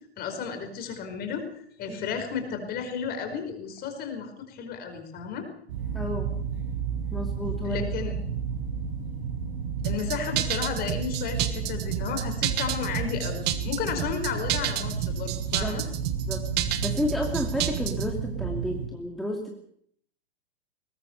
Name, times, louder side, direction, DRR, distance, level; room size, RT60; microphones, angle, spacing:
voice 1, 0.2-1.4 1.8-5.5 7.6-8.1 9.8-15.8, left 6 dB, 30° left, 6 dB, 5.1 m, -33 dB
sound 1, 5.7-18.9, right 6 dB, 50° right, 6.8 m, -32 dB
voice 2, 5.9-6.3 7.1-7.8 15.6-15.8 16.3-16.4 16.8-19.6, left 1 dB, ahead, 0 dB, 2.5 m, -31 dB
sound 2, 9.8-18.1, right 12 dB, 30° right, 1.7 m, -30 dB
21.5 x 19.0 x 6.9 m, 0.66 s
figure-of-eight pair, 110°, 33 cm